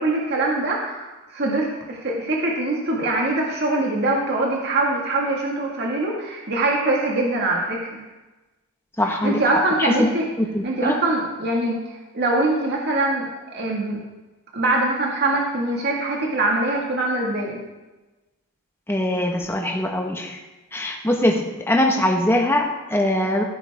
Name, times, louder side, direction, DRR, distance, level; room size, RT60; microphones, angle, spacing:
voice 1, 0.0-8.0 9.2-10.3 10.6-14.0 14.5-17.6, right 2 dB, 50° right, -2 dB, 1.9 m, -23 dB
voice 2, 9.0-9.4 9.8-10.1 10.4-10.9 18.9-20.4 20.7-23.4, left 1 dB, 10° left, 1 dB, 1.4 m, -22 dB
15.0 x 9.8 x 3.6 m, 1.1 s
head